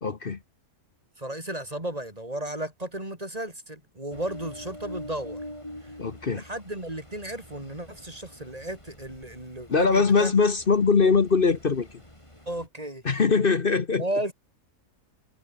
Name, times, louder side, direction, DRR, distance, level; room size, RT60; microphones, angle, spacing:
voice 1, 0.0-0.4 6.0-6.4 9.7-11.9 13.0-14.0, left 4 dB, 40° left, 1.2 m, -22 dB
voice 2, 1.2-5.4 6.3-10.3 12.5-13.0 14.0-14.3, right 1 dB, 25° right, 4.1 m, -34 dB
Ocean, 4.1-12.7, left 1 dB, 20° left, 7.4 m, -45 dB
omnidirectional pair, 1.7 m